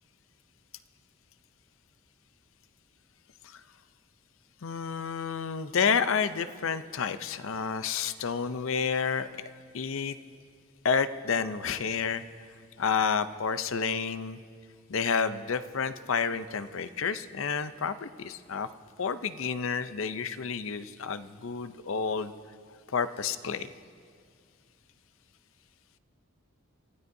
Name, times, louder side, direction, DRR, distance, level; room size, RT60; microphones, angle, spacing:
voice 1, 4.6-9.3 9.7-10.2 10.8-12.2 12.8-14.4 14.9-18.7 19.0-22.3 22.9-23.7, left 6 dB, 65° left, 12 dB, 0.6 m, -30 dB
29.0 x 15.5 x 2.7 m, 2.2 s
head